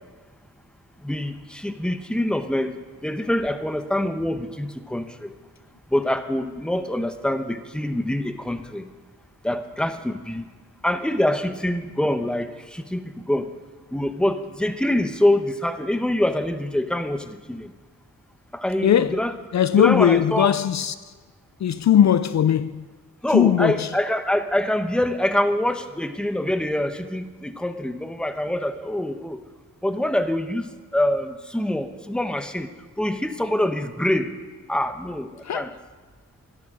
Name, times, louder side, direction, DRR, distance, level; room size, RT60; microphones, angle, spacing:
voice 1, 1.0-5.3 5.9-8.9 9.4-10.5 10.8-13.5 13.9-17.7 18.5-19.3 19.7-20.6 23.2-29.4 29.8-32.7 33.0-34.3 34.7-35.8, left 1 dB, 5° left, 0.9 m, -25 dB
voice 2, 18.8-19.2 19.5-20.9 21.6-22.8 23.3-23.9 35.5-35.7, left 9 dB, 60° left, 0.4 m, -19 dB
14.5 x 11.5 x 6.2 m
wide cardioid pair, 90°, 32 cm